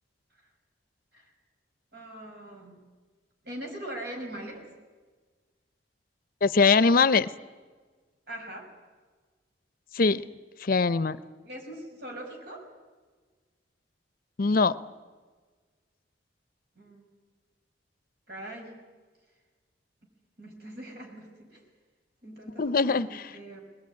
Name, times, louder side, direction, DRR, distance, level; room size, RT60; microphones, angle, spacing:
voice 1, 1.9-2.8 3.4-4.7 8.3-8.7 11.4-12.7 16.8-17.0 18.3-18.8 20.4-21.6 22.2-23.6, right 1 dB, 60° right, 2 dB, 5.7 m, -41 dB
voice 2, 6.4-7.3 9.9-10.2 10.6-11.2 14.4-14.8 22.6-23.1, left 4 dB, 50° left, 15 dB, 0.6 m, -22 dB
20.5 x 20.5 x 9.6 m, 1.4 s
head